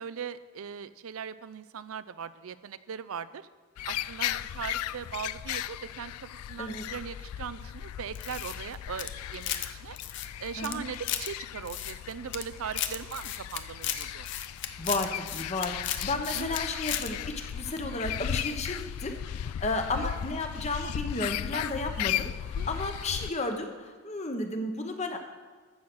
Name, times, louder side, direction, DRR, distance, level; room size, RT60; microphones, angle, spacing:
voice 1, 0.0-3.5 3.8-10.0 10.4-14.3 16.3-16.6 19.9-20.1 22.6-22.7, right 7 dB, 75° right, 15 dB, 0.5 m, -39 dB
sound 1, 3.8-23.3, left 11 dB, 90° left, 0.3 m, -36 dB
sound 2, 8.1-9.7 10.0-11.3 11.7-12.4 12.7-16.6 16.9-17.1, left 11 dB, 55° left, 0.6 m, -35 dB
voice 2, 14.8-25.2, left 2 dB, 30° left, 5 dB, 0.9 m, -33 dB
14.5 x 6.4 x 6.1 m, 1.4 s
head